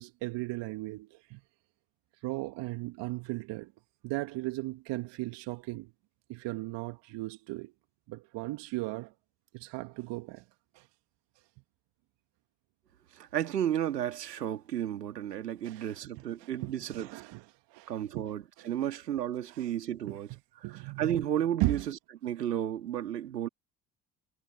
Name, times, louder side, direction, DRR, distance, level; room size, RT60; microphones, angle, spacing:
voice 1, 0.0-1.4 2.2-3.7 4.0-5.9 6.3-7.7 8.1-9.1 9.5-10.4 10.7-10.9 15.6-15.9 16.4-17.4 17.7-18.3 18.6-18.7 19.5-19.6 20.1-20.2 20.6-21.2 21.6-21.8, right 20 dB, 60° right, 2.0 m, -36 dB
voice 2, 13.1-17.1 17.9-20.3 20.6-23.5, right 10 dB, 85° right, 2.7 m, -33 dB
figure-of-eight pair, 50°, 47 cm